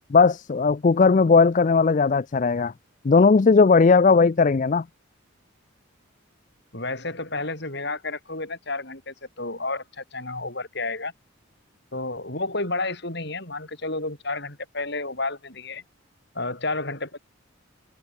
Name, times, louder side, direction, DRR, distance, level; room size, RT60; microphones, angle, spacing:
voice 1, 0.1-2.7 3.0-4.8, left 4 dB, 35° left, 0.4 m, -17 dB
voice 2, 6.7-11.1 11.9-15.8 16.3-17.2, left 2 dB, 55° left, 6.4 m, -31 dB
head